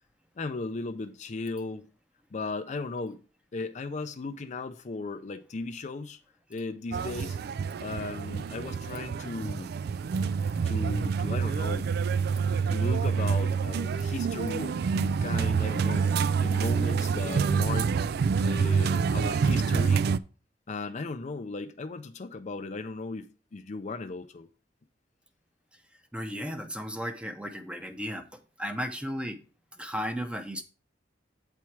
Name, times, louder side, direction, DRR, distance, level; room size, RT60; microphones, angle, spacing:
voice 1, 0.4-1.9 2.3-3.2 3.5-6.2 6.5-7.4 7.8-9.7 10.6-11.9 12.7-18.0 18.4-20.1 20.7-24.5, left 3 dB, 40° left, 0.5 m, -36 dB
sound 1, 6.9-20.2, right 6 dB, 60° right, 0.3 m, -27 dB
voice 2, 26.1-28.2 28.6-29.4 29.8-30.6, equal, 5° right, 0.7 m, -34 dB
8.3 x 4.5 x 4.6 m
head